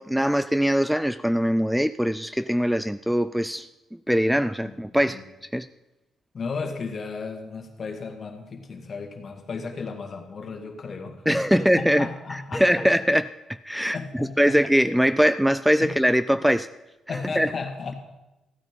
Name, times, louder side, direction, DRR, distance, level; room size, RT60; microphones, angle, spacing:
voice 1, 0.0-3.7 4.1-5.7 11.3-13.3 13.6-14.0 14.4-16.7 17.4-17.5, equal, ahead, 0.3 m, -22 dB
voice 2, 6.3-12.9 13.9-14.6 15.8-15.9 17.1-17.9, left 4 dB, 45° left, 1.9 m, -34 dB
14.5 x 9.0 x 5.2 m
cardioid pair, 90°, 0 cm